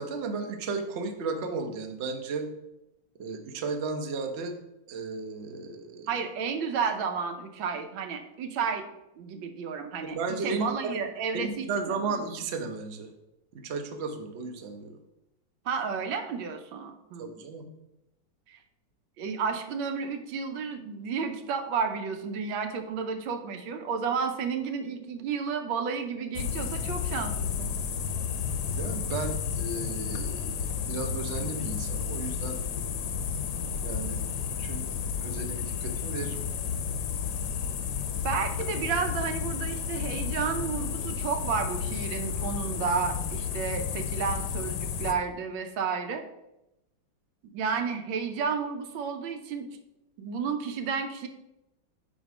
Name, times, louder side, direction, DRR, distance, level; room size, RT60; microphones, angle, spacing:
voice 1, 0.0-2.5 3.2-4.6 4.9-6.1 10.0-11.0 11.3-13.1 13.5-15.0 17.2-17.7 28.8-32.6 33.8-34.2 34.6-34.9 35.2-36.4, right 4 dB, 55° right, 5 dB, 0.7 m, -34 dB
voice 2, 6.1-8.9 9.2-12.2 15.6-17.4 18.5-18.6 19.2-27.7 38.2-46.2 47.5-49.7 50.2-51.3, right 6 dB, 85° right, 6 dB, 1.5 m, -32 dB
sound 1, 26.4-45.1, left 7 dB, 70° left, 1.1 m, -32 dB
5.1 x 4.3 x 5.9 m, 0.89 s
omnidirectional pair, 2.1 m